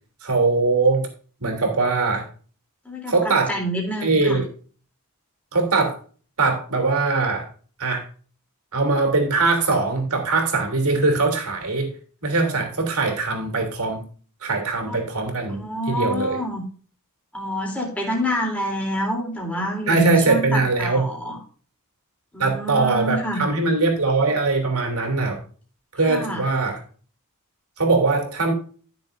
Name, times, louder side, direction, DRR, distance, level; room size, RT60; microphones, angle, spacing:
voice 1, 0.2-1.1 1.4-2.3 3.1-3.5 4.0-4.5 5.5-6.0 6.4-7.4 7.8-8.0 8.7-11.9 12.2-14.0 14.4-15.6 15.9-16.4 19.9-21.0 22.4-25.4 25.9-26.8 27.8-28.5, right 3 dB, 70° right, 4 dB, 3.3 m, -21 dB
voice 2, 2.8-4.4 14.8-15.0 15.5-16.6 17.3-21.4 22.3-23.4 26.0-26.5, equal, 5° left, -2 dB, 3.4 m, -27 dB
14.0 x 7.0 x 2.6 m, 0.41 s
head